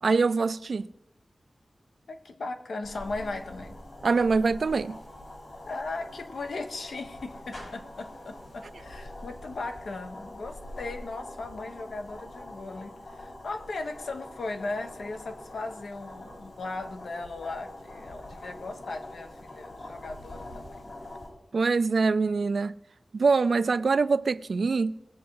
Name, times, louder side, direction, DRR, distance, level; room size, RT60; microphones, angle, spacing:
voice 1, 0.0-0.9 4.0-5.0 21.5-22.7 23.1-25.0, right 4 dB, 70° right, 0.4 m, -24 dB
voice 2, 2.1-3.8 5.7-20.9, left 3 dB, 90° left, 1.1 m, -37 dB
sound 1, 2.8-21.3, left 1 dB, 70° left, 4.3 m, -44 dB
20.0 x 7.1 x 4.7 m
wide cardioid pair, 100°, 0 cm